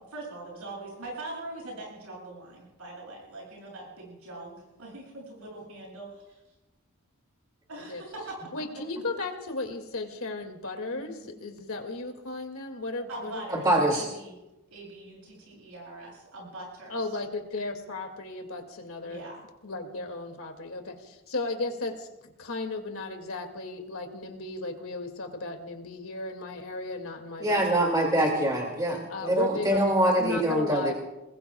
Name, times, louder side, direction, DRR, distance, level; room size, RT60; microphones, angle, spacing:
voice 1, 0.1-6.4 7.7-8.5 9.1-9.2 13.1-14.4 14.7-17.0 19.0-19.4, right 2 dB, 85° right, -3 dB, 7.8 m, -42 dB
voice 2, 8.5-13.5 16.9-19.2 19.6-28.4 29.1-29.8 30.2-30.9, left 3 dB, 70° left, 4 dB, 2.3 m, -35 dB
voice 3, 13.5-14.1 27.4-30.9, right 1 dB, 20° right, -1 dB, 2.3 m, -24 dB
27.5 x 20.5 x 2.3 m, 1.0 s
head